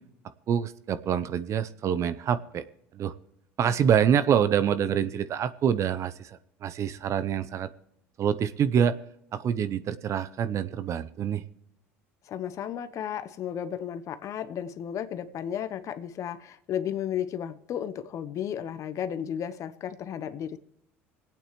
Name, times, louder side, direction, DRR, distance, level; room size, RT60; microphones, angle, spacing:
voice 1, 0.5-2.6 2.9-3.1 3.6-7.7 8.2-8.9 9.3-11.4, right 8 dB, 45° right, 14 dB, 0.7 m, -26 dB
voice 2, 12.3-20.6, left 9 dB, 50° left, 13 dB, 0.8 m, -33 dB
26.0 x 8.9 x 3.1 m, 0.78 s
hypercardioid pair, 75°, 7 cm